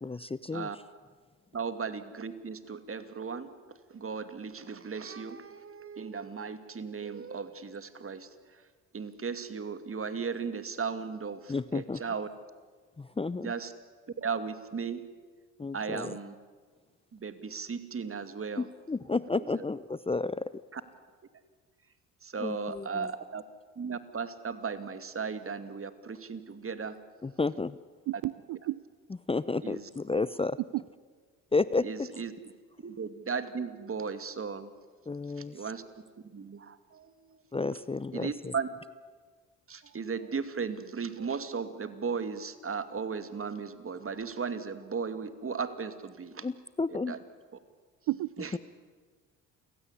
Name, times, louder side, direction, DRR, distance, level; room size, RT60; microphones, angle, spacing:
voice 1, 0.0-0.7 11.5-12.0 13.0-13.5 15.6-16.1 18.6-20.5 22.4-23.1 27.2-27.8 29.3-30.6 31.5-32.1 35.1-35.6 37.5-38.5 46.4-47.1 48.5-48.6, left 3 dB, 15° left, 17 dB, 0.7 m, -31 dB
voice 2, 1.5-8.3 8.9-12.3 13.4-13.7 14.2-15.0 15.7-16.3 17.1-18.7 19.4-19.6 20.7-20.8 22.2-23.4 23.8-27.0 28.1-28.2 29.6-29.9 31.8-32.3 32.8-34.7 35.5-35.8 36.3-37.4 38.1-38.7 39.7-46.5 47.1-47.2 48.4-48.5, right 5 dB, 35° right, 11 dB, 2.5 m, -36 dB
voice 3, 28.1-28.8 48.1-48.3, right 17 dB, 60° right, 18 dB, 0.7 m, -32 dB
29.0 x 17.0 x 9.9 m, 1.5 s
hypercardioid pair, 60°, 38 cm